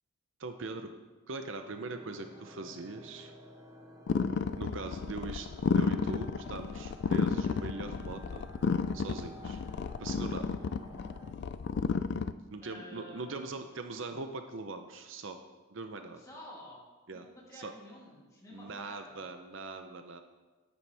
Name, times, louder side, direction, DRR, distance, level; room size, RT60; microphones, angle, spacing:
voice 1, 0.4-0.9 1.3-3.3 4.6-5.5 5.7-8.5 8.9-9.6 10.0-10.6 12.5-15.4 15.7-16.2 17.1-17.7 18.5-20.2, right 3 dB, 60° right, 7 dB, 0.6 m, -41 dB
sound 1, 1.6-11.3, equal, 15° right, 1.0 m, -53 dB
sound 2, 4.1-12.3, left 5 dB, 50° left, 0.3 m, -32 dB
voice 2, 12.6-13.6 16.2-16.8 17.1-19.2, left 1 dB, 15° left, -6 dB, 2.8 m, -50 dB
10.5 x 10.0 x 3.4 m, 1.2 s
head